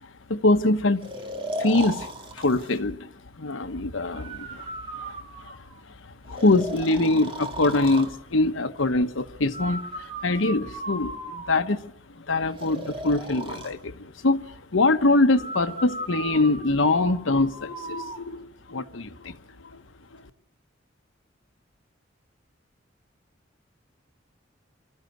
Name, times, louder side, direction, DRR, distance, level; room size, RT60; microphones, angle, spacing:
voice 1, 0.0-1.1 1.6-5.6 6.3-11.8 12.2-19.4 19.6-19.8 20.1-20.2, left 2 dB, 90° left, 1.1 m, -24 dB
Breathing, 1.0-2.8 4.1-5.8 6.3-8.1 9.5-11.8 12.6-13.7 15.4-18.2, right 2 dB, 30° right, 2.1 m, -36 dB
25.0 x 14.0 x 9.2 m
head